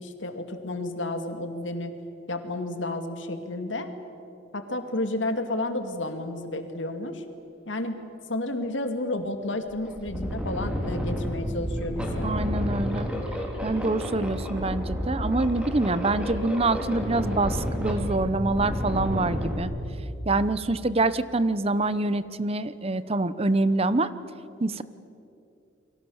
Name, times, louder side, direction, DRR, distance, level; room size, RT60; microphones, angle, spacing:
voice 1, 0.0-1.9 2.3-3.9 4.5-7.2 7.7-8.0 8.3-12.3, left 2 dB, 85° left, 7 dB, 2.4 m, -31 dB
sound 1, 9.2-9.3 9.7-19.6, equal, 5° right, 3.8 m, -30 dB
voice 2, 12.2-13.1 13.6-19.7 20.2-24.1 24.6-24.8, right 2 dB, 30° right, 14 dB, 0.8 m, -25 dB
29.5 x 23.0 x 7.2 m, 2.7 s
head